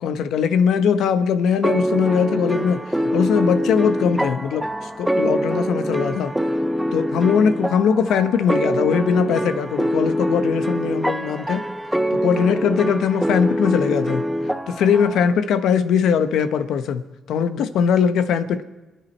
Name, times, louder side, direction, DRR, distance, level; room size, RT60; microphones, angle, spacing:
voice 1, 0.0-6.3 6.9-11.6 12.1-14.2 14.7-18.6, left 7 dB, 80° left, 11 dB, 0.9 m, -20 dB
sound 1, 1.6-15.3, equal, 5° right, 0.6 m, -24 dB
26.0 x 9.4 x 4.4 m, 1.2 s
cardioid pair, 90°, 0 cm